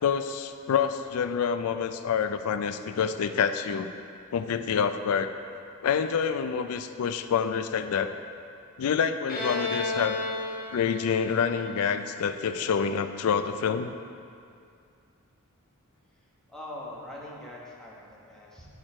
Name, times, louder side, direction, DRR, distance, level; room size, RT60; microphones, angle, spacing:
voice 1, 0.0-3.9 4.3-5.3 5.8-8.1 8.8-10.2 10.7-13.9, left 7 dB, 70° left, 10 dB, 0.4 m, -27 dB
Bowed string instrument, 9.3-12.8, left 3 dB, 40° left, 0.8 m, -33 dB
voice 2, 16.5-18.7, left 1 dB, ahead, -6 dB, 1.1 m, -42 dB
7.4 x 4.8 x 4.3 m, 2.4 s
head